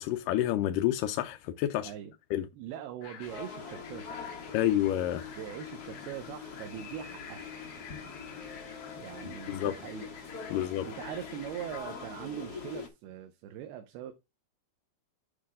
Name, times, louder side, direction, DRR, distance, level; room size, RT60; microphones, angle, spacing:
voice 1, 0.0-1.9 2.3-2.5 4.5-5.2 9.5-9.8 10.5-10.9, left 13 dB, 80° left, 2.0 m, -29 dB
voice 2, 2.5-4.3 5.4-7.5 9.0-10.1 10.8-14.1, right 10 dB, 90° right, 2.8 m, -41 dB
sound 1, 3.0-11.8, left 7 dB, 65° left, 2.9 m, -51 dB
sound 2, 3.2-12.9, left 5 dB, 40° left, 1.4 m, -44 dB
9.0 x 4.9 x 3.6 m
omnidirectional pair, 4.4 m